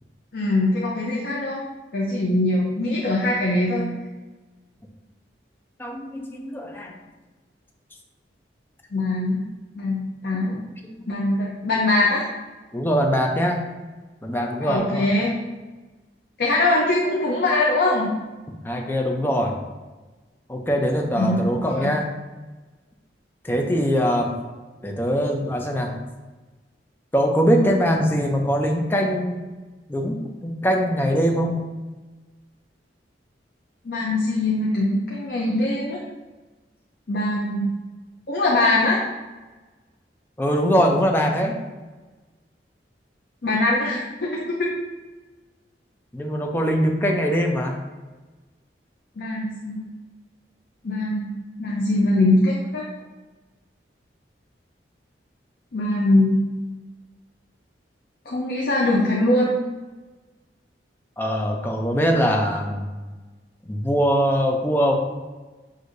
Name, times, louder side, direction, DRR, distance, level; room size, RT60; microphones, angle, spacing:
voice 1, 0.3-1.6 1.9-3.9 8.9-9.4 9.8-10.6 11.1-12.3 14.6-15.3 16.4-18.1 21.2-21.9 33.8-36.0 37.1-37.7 38.3-39.0 43.4-44.7 49.2-49.8 50.8-51.3 51.6-52.9 55.7-56.4 58.3-59.5, left 2 dB, 60° left, -4 dB, 0.6 m, -22 dB
voice 2, 5.8-7.0 10.3-10.5 10.9-11.0 12.7-13.7 14.2-15.1 18.6-19.5 20.5-22.1 23.4-24.4 24.8-26.0 27.1-29.4 29.9-31.5 40.4-41.5 46.1-47.8 61.2-62.9 63.7-64.9, equal, 10° left, 1 dB, 0.4 m, -22 dB
6.3 x 2.6 x 2.5 m, 1.2 s
head